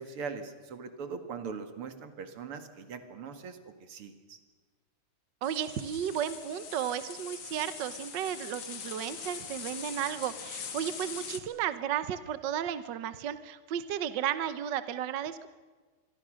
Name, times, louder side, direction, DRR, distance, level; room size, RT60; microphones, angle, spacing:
voice 1, 0.0-4.4, right 5 dB, 80° right, 9 dB, 2.7 m, -41 dB
sound 1, 5.4-11.4, left 7 dB, 85° left, 2.8 m, -42 dB
voice 2, 5.4-15.5, right 10 dB, 60° right, 13 dB, 1.4 m, -34 dB
26.5 x 22.5 x 6.3 m, 1.4 s
omnidirectional pair, 2.4 m